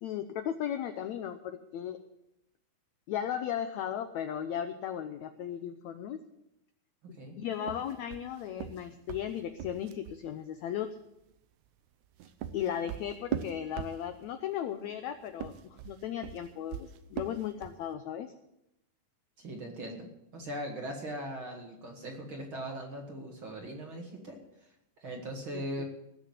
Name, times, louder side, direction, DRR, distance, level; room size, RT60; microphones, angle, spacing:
voice 1, 0.0-2.0 3.1-6.2 7.1-11.0 12.5-18.3 25.5-25.8, left 10 dB, 80° left, 8 dB, 1.6 m, -36 dB
sound 1, 7.6-10.2 11.9-14.4 15.3-17.9, right 10 dB, 75° right, 1.8 m, -40 dB
voice 2, 19.4-20.1 20.3-24.4 25.0-25.8, right 1 dB, 40° right, 1 dB, 2.3 m, -39 dB
18.5 x 6.6 x 7.7 m, 0.84 s
omnidirectional pair, 4.1 m